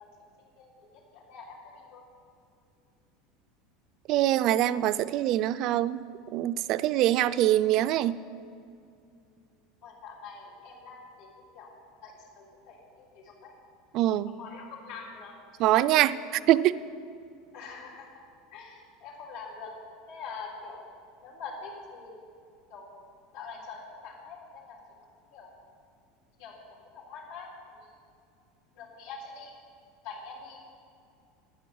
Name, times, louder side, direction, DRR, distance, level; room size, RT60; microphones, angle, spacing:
voice 1, 0.6-2.0 9.8-11.3 11.5-11.7 12.0-13.5 14.4-15.3 17.5-18.1 18.5-19.7 20.1-20.8 21.2-22.1 22.7-23.0 23.3-24.8 25.3-25.5 26.4-27.9 28.7-29.5 30.0-30.6, left 4 dB, 75° left, -6 dB, 3.9 m, -44 dB
voice 2, 4.1-6.0 6.3-8.2 13.9-14.3 15.6-16.2 16.5-16.7, right 13 dB, 45° right, 15 dB, 0.4 m, -24 dB
12.5 x 10.0 x 7.1 m, 2.4 s
supercardioid pair, 155°, 0 cm